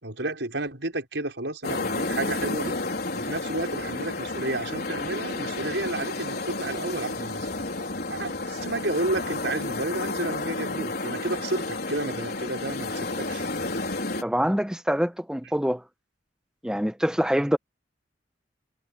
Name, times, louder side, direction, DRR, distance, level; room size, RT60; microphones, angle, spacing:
voice 1, 0.0-2.8 3.2-7.5 8.1-13.5, right 2 dB, 75° right, 5.7 m, -31 dB
sound 1, 1.6-14.2, left 2 dB, 60° left, 4.4 m, -31 dB
voice 2, 14.2-15.8 16.6-17.6, equal, 5° right, 0.9 m, -25 dB
head